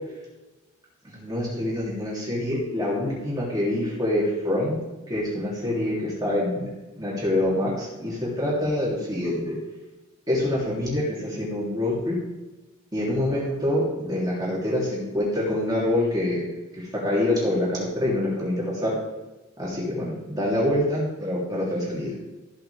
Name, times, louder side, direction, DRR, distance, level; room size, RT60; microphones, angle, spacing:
voice 1, 1.1-4.7 5.1-6.7 7.0-9.6 10.3-12.2 12.9-16.4 16.8-19.0 19.6-22.1, left 1 dB, 20° right, -6 dB, 3.3 m, -26 dB
14.5 x 8.2 x 3.6 m, 1.1 s
head